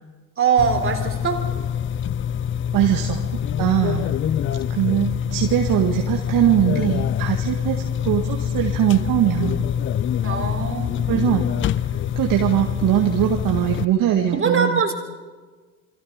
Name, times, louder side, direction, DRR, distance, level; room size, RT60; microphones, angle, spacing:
voice 1, 0.4-1.5 10.2-11.1 14.3-14.9, right 6 dB, 25° right, 4 dB, 4.0 m, -22 dB
sound 1, 0.6-13.9, left 9 dB, 25° left, 0.6 m, -25 dB
voice 2, 2.7-3.2 3.6-4.1 4.7-9.6 11.1-11.5 12.2-14.8, right 11 dB, 45° right, 2 dB, 2.0 m, -21 dB
28.0 x 22.5 x 5.3 m, 1.4 s
figure-of-eight pair, 65°, 46 cm